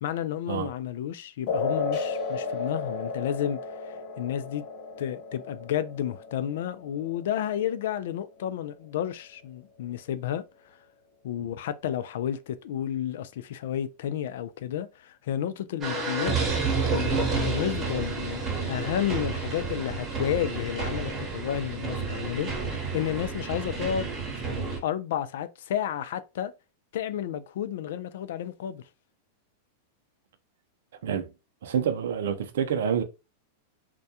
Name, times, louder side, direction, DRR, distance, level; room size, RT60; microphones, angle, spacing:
voice 1, 0.0-4.6 5.0-10.4 11.2-16.4 16.9-18.4 18.7-24.1 24.8-26.5 26.9-28.8, left 10 dB, 70° left, 0.3 m, -31 dB
sound 1, 1.5-8.5, left 4 dB, 55° left, 0.7 m, -34 dB
sound 2, 15.8-24.8, right 4 dB, 25° right, 0.9 m, -30 dB
voice 2, 31.6-33.0, right 8 dB, 75° right, 0.4 m, -27 dB
2.2 x 2.2 x 2.7 m
hypercardioid pair, 125°, 0 cm